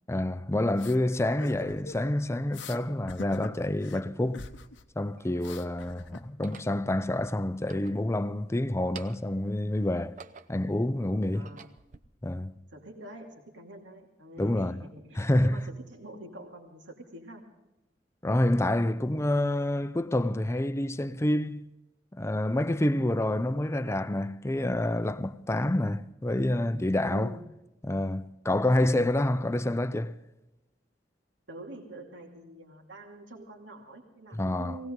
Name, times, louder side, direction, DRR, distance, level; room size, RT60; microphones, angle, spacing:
voice 1, 0.1-4.5 5.0-10.2 10.5-11.5 12.2-12.5 14.4-14.8 15.2-15.7 18.2-21.7 22.1-27.3 27.8-30.2 34.3-34.8, left 1 dB, 15° left, 0.5 m, -28 dB
sound 1, 0.8-1.0 1.4-2.1 2.5-2.8 3.1-4.0 4.3-4.8 5.1-6.5, left 4 dB, 85° left, 0.9 m, -44 dB
sound 2, 3.8-3.9 4.7-5.5 6.3-6.8 7.5-8.5 8.8-9.4 9.9-10.7 11.2-12.0, right 5 dB, 45° right, 0.7 m, -50 dB
voice 2, 11.3-11.7 12.7-17.5 27.1-27.4 31.5-34.9, right 1 dB, 85° right, 2.6 m, -46 dB
19.5 x 17.5 x 3.8 m
head